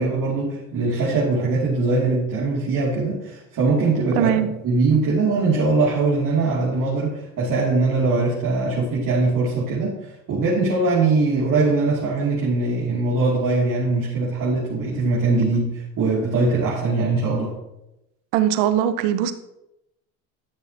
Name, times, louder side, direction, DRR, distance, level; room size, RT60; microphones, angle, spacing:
voice 1, 0.0-4.3 4.6-17.5, right 3 dB, 50° right, -6 dB, 2.8 m, -21 dB
voice 2, 4.1-4.5 18.3-19.3, right 10 dB, 70° right, 11 dB, 0.9 m, -20 dB
13.0 x 6.9 x 2.9 m, 0.89 s
hypercardioid pair, 75°, 42 cm